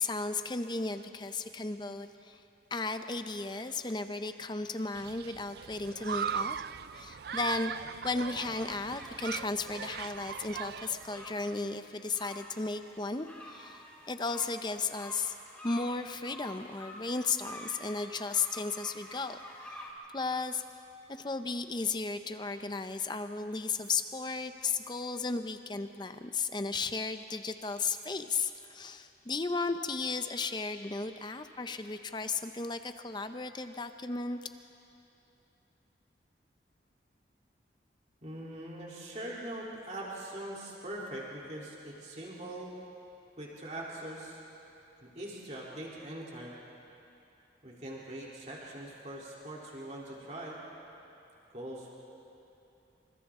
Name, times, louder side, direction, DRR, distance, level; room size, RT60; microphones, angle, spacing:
voice 1, 0.0-2.4 2.7-6.6 6.9-7.7 8.0-15.4 15.6-19.8 20.1-20.6 21.1-34.4, left 4 dB, 25° left, 9 dB, 0.6 m, -35 dB
Human group actions, 4.9-11.5, right 7 dB, 55° right, 0.4 m, -39 dB
sound 1, 8.8-19.9, left 1 dB, 10° left, 2.9 m, -49 dB
voice 2, 38.2-42.7 43.4-44.4 45.0-46.6 47.6-50.6 51.5-51.9, right 1 dB, 40° right, -5 dB, 3.3 m, -42 dB
28.0 x 26.5 x 3.7 m, 2.8 s
head